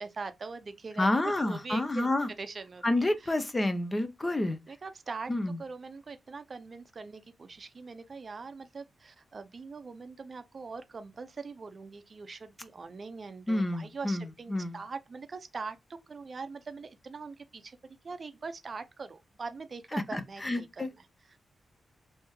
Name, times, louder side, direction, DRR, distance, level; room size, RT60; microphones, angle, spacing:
voice 1, 0.0-2.1 2.4-3.3 4.2-5.3 5.6-20.8, right 4 dB, 45° right, 0.5 m, -42 dB
voice 2, 1.0-2.3 2.8-4.6 5.3-5.6 13.5-14.8 19.9-20.9, left 1 dB, 25° left, 0.6 m, -29 dB
3.4 x 2.7 x 3.0 m
cardioid pair, 80°, 0 cm